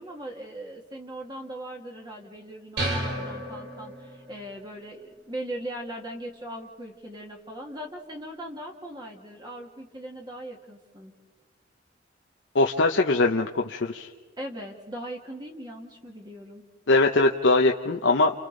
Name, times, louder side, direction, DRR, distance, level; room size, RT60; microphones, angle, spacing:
voice 1, 0.0-11.1 14.4-16.6, right 1 dB, 25° right, 1 dB, 1.7 m, -39 dB
sound 1, 2.8-4.4, right 1 dB, 65° right, 3.1 m, -32 dB
voice 2, 12.5-14.1 16.9-18.3, left 2 dB, 80° left, 3 dB, 0.9 m, -21 dB
29.5 x 29.0 x 3.9 m, 1.4 s
head